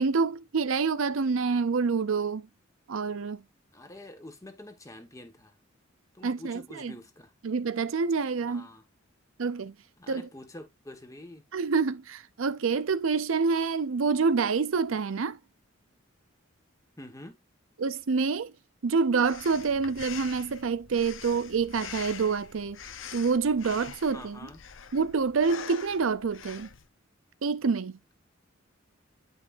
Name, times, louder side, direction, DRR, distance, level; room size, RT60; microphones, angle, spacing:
voice 1, 0.0-2.5 2.9-3.4 6.2-6.9 7.4-8.7 9.4-9.7 10.1-10.2 11.5-15.4 17.8-18.5 18.8-22.8 23.1-24.4 24.9-26.7 27.4-28.0, right 5 dB, 80° right, 0.6 m, -27 dB
voice 2, 3.7-5.5 6.1-7.3 8.5-8.8 10.0-11.4 17.0-17.4 24.1-24.6, left 1 dB, 15° left, 1.4 m, -46 dB
Breathing, 19.2-26.9, left 7 dB, 65° left, 0.8 m, -44 dB
10.0 x 5.4 x 2.6 m
head